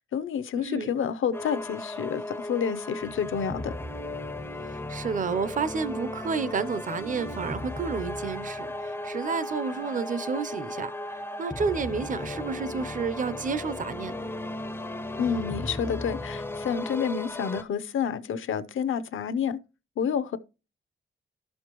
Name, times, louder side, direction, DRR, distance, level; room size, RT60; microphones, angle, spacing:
voice 1, 0.0-3.7 15.2-19.6 20.0-20.4, left 7 dB, 70° left, 0.6 m, -29 dB
voice 2, 0.6-0.9 4.7-14.3, right 5 dB, 40° right, 0.6 m, -31 dB
sound 1, 1.3-17.6, left 1 dB, 10° left, 0.4 m, -36 dB
12.0 x 6.4 x 3.0 m
wide cardioid pair, 125°, 21 cm